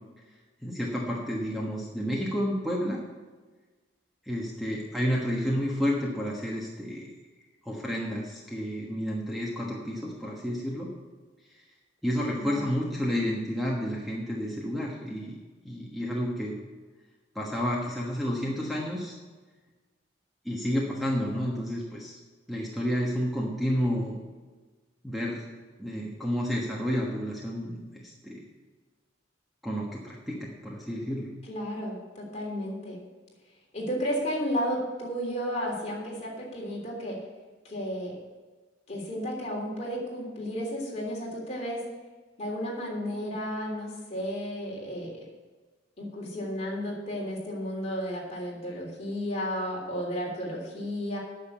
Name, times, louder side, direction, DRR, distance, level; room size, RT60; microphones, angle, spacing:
voice 1, 0.6-3.0 4.2-7.1 7.6-10.9 12.0-15.4 15.6-16.5 17.3-19.1 20.4-22.2 22.5-24.2 25.0-25.4 25.8-28.4 29.6-31.3, equal, ahead, -3 dB, 1.3 m, -30 dB
voice 2, 12.3-12.7 31.5-33.0 33.7-37.2 37.6-38.2 38.9-41.8 42.4-45.1 46.0-51.2, equal, 35° left, -3 dB, 3.3 m, -33 dB
9.5 x 6.7 x 9.0 m, 1.3 s
head